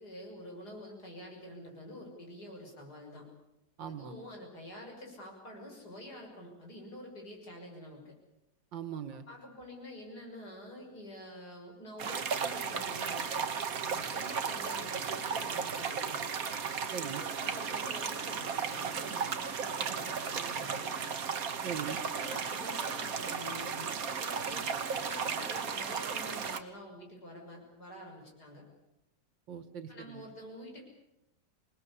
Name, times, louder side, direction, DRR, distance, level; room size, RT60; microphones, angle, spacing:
voice 1, 0.0-3.2 3.8-8.1 9.3-13.3 13.8-16.2 17.0-21.0 22.0-28.6 29.9-30.8, left 1 dB, 60° left, 1 dB, 6.8 m, -47 dB
voice 2, 3.8-4.2 8.7-9.2 16.9-17.2 21.6-22.0 29.5-30.2, right 8 dB, 90° right, 10 dB, 2.4 m, -40 dB
sound 1, 12.0-26.6, right 6 dB, 50° right, 1.7 m, -35 dB
27.0 x 19.5 x 8.4 m, 0.91 s
omnidirectional pair, 2.0 m